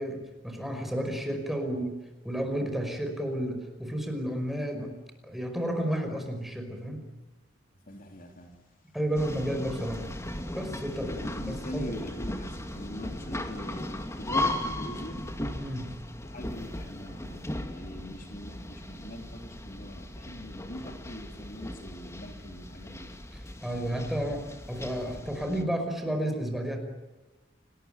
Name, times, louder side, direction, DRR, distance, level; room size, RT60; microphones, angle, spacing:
voice 1, 0.0-1.9 2.2-5.0 5.2-7.0 8.9-10.1 10.5-11.1 11.4-12.0 15.5-16.0 23.3-26.8, equal, ahead, 4 dB, 5.4 m, -32 dB
voice 2, 7.9-8.6 11.0-13.9 14.2-15.2 16.2-23.1, left 1 dB, 50° left, 3 dB, 3.5 m, -42 dB
sound 1, 9.2-25.6, left 1 dB, 15° left, 2.4 m, -37 dB
29.5 x 20.5 x 9.1 m, 1.1 s
head